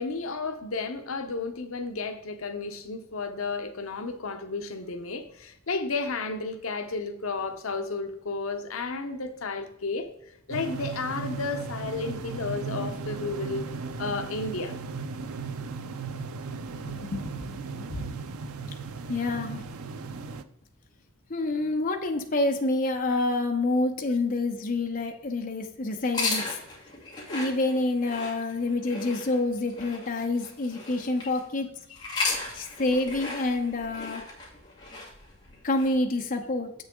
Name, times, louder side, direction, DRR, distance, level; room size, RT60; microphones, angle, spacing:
voice 1, 0.0-10.1 10.5-13.7 14.0-14.8, left 3 dB, 70° left, 8 dB, 0.8 m, -32 dB
sound 1, 10.5-20.4, right 5 dB, 90° right, 0.5 m, -36 dB
voice 2, 16.7-18.1 18.6-18.7 19.1-19.7 21.3-26.5 27.3-31.7 32.5-34.3 35.6-36.7, left 2 dB, 40° left, 3 dB, 0.7 m, -28 dB
sound 2, 26.1-31.4 31.9-35.9, left 3 dB, 20° left, 2.1 m, -35 dB
7.5 x 6.4 x 3.7 m, 0.79 s
head